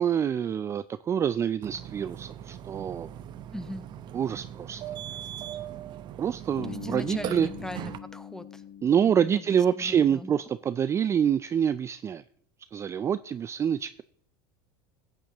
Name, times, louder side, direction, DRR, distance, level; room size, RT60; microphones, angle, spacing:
voice 1, 0.0-3.1 4.1-4.8 6.2-7.5 8.8-12.2 12.7-14.0, right 8 dB, 25° right, 0.3 m, -26 dB
Burping eructation, 1.6-8.0, right 11 dB, 40° right, 0.8 m, -40 dB
voice 2, 3.5-3.8 6.7-8.6 9.0-10.3, left 1 dB, 5° left, 0.8 m, -40 dB
Bass guitar, 6.6-10.5, left 9 dB, 55° left, 1.1 m, -43 dB
15.0 x 9.0 x 2.9 m
supercardioid pair, 115°, 12 cm